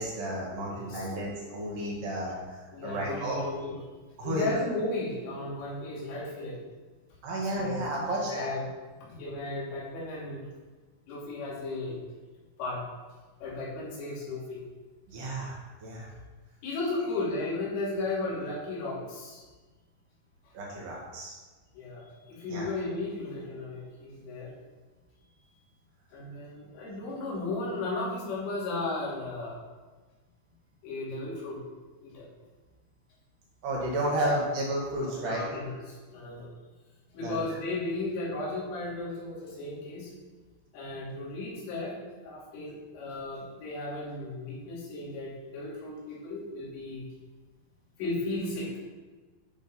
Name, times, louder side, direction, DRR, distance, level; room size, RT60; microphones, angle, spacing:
voice 1, 0.0-3.4 4.2-4.6 7.2-8.5 15.1-16.1 20.5-21.3 22.5-22.7 33.6-35.4 37.2-37.4, right 1 dB, 65° right, -3 dB, 3.6 m, -32 dB
voice 2, 0.7-1.1 2.7-3.8 4.2-6.6 7.4-7.9 8.2-8.7 9.1-10.4 11.1-12.0 12.6-12.9 13.4-14.6 16.6-19.4 21.8-24.5 26.1-29.6 30.8-31.6 32.0-32.3 34.2-34.4 35.0-36.5 37.1-40.1 40.7-47.1 48.0-48.8, left 2 dB, 85° left, -6 dB, 5.4 m, -35 dB
11.5 x 5.1 x 5.3 m, 1.3 s
omnidirectional pair, 5.6 m